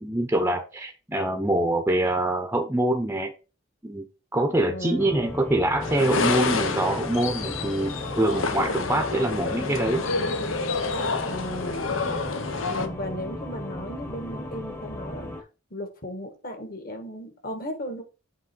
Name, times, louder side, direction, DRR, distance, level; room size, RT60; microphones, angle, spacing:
voice 1, 0.0-3.3 3.8-4.1 4.3-10.1, right 1 dB, 10° right, 4 dB, 0.7 m, -25 dB
voice 2, 4.7-5.3 11.3-12.1 12.7-15.3 15.7-18.0, left 1 dB, 50° left, 4 dB, 1.6 m, -35 dB
sound 1, 5.0-15.4, left 1 dB, 10° left, 0.9 m, -36 dB
sound 2, 5.8-12.9, left 4 dB, 85° left, 0.8 m, -28 dB
7.6 x 3.1 x 4.5 m, 0.32 s
head